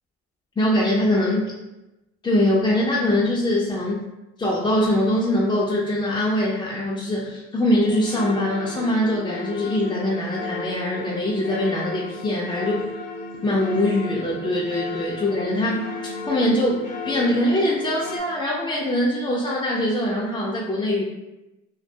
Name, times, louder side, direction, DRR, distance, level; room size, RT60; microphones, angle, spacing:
voice 1, 0.6-1.4 2.2-4.1 4.4-12.8 13.4-15.9 16.2-16.8 17.0-21.0, left 1 dB, 15° left, -5 dB, 0.3 m, -22 dB
sound 1, 7.9-18.2, left 2 dB, 85° left, 0.5 m, -34 dB
2.2 x 2.2 x 2.7 m, 0.99 s
cardioid pair, 90°, 30 cm